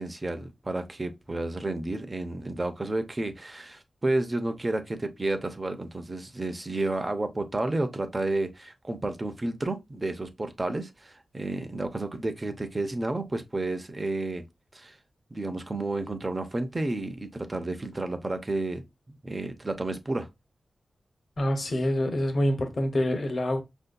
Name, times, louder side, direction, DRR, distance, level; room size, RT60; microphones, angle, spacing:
voice 1, 0.0-14.4 14.7-15.0 15.3-18.8 19.1-20.3, right 2 dB, 25° right, 0.6 m, -31 dB
voice 2, 21.4-23.6, left 1 dB, 50° left, 0.8 m, -26 dB
5.5 x 2.6 x 2.2 m
wide cardioid pair, 110°, 0 cm